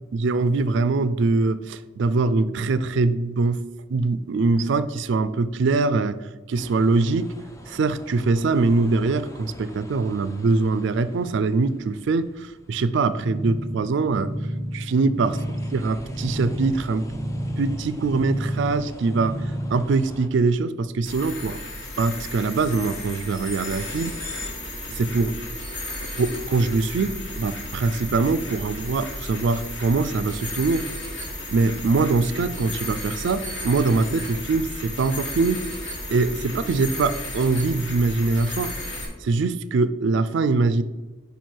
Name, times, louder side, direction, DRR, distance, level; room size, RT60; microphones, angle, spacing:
voice 1, 0.1-3.6 3.9-6.2 6.5-7.3 7.7-14.4 14.7-15.4 15.7-17.1 17.6-19.4 19.7-21.6 22.0-24.2 24.9-25.4 26.0-30.9 31.5-35.7 36.1-38.7 39.2-40.8, right 3 dB, 60° right, 14 dB, 0.3 m, -23 dB
sound 1, 6.6-20.3, left 1 dB, 15° left, 0.4 m, -44 dB
sound 2, 13.2-19.9, equal, 20° right, 0.8 m, -31 dB
sound 3, 21.1-39.1, left 1 dB, 60° left, 1.7 m, -34 dB
5.3 x 4.6 x 4.4 m, 1.2 s
head